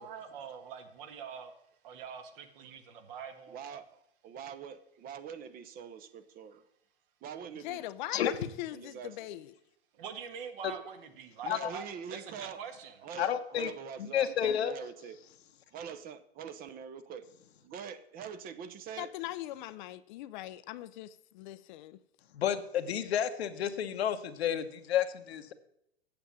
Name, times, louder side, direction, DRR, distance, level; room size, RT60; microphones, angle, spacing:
voice 1, 0.0-1.5 1.8-3.6 9.9-13.0, right 7 dB, 55° right, 1.7 m, -44 dB
voice 2, 3.5-4.0 4.2-6.6 7.2-7.8 8.7-9.3 11.4-12.6 13.0-15.2 15.7-17.3 17.6-19.1, right 7 dB, 30° right, 0.8 m, -44 dB
voice 3, 7.6-9.5 19.0-22.0, left 14 dB, 50° left, 0.5 m, -41 dB
voice 4, 13.2-13.7 14.0-14.7 22.3-25.5, left 9 dB, 75° left, 1.1 m, -31 dB
8.7 x 7.0 x 7.5 m
hypercardioid pair, 115°, 32 cm